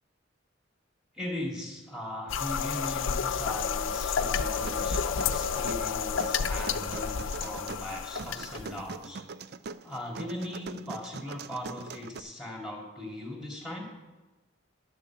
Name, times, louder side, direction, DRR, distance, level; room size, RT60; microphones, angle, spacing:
voice 1, 1.1-9.2 9.8-13.9, left 1 dB, 5° right, 0 dB, 2.2 m, -39 dB
sound 1, 2.3-8.9, left 6 dB, 85° left, 0.5 m, -30 dB
sound 2, 4.2-12.2, right 4 dB, 55° right, 0.4 m, -42 dB
11.0 x 7.0 x 7.3 m, 1.1 s
head